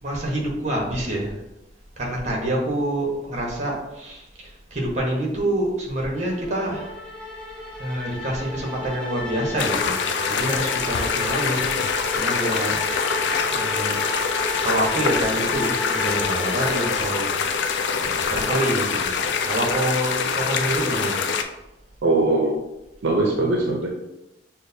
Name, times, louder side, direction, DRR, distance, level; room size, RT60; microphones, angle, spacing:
voice 1, 0.0-1.4 2.0-6.9 7.8-10.0 10.3-12.8 13.4-14.0 14.6-17.3 18.0-21.3, right 1 dB, 40° right, -1 dB, 1.0 m, -27 dB
sound 1, 6.1-17.5, left 2 dB, 5° left, 1.1 m, -33 dB
sound 2, 9.6-21.4, left 6 dB, 70° left, 0.4 m, -25 dB
voice 2, 22.0-22.6 23.0-23.9, right 2 dB, 75° right, 0 dB, 0.6 m, -20 dB
6.2 x 2.1 x 2.7 m, 0.93 s
head